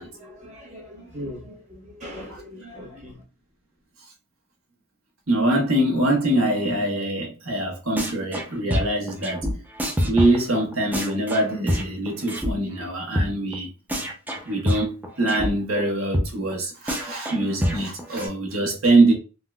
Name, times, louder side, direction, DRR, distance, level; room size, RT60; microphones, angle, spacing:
voice 1, 0.0-3.2, equal, 30° right, 1.1 m, -40 dB
voice 2, 5.3-9.4 10.0-13.7 14.4-19.1, right 1 dB, 75° right, 1.0 m, -23 dB
sound 1, 8.0-8.5 8.7-12.5 12.8-12.9 13.2-13.3 13.5-13.6 13.9-15.5 15.8-15.9 16.1-16.3 16.5-16.6 16.9-18.3, equal, 10° right, 0.4 m, -26 dB
3.6 x 2.1 x 2.2 m
head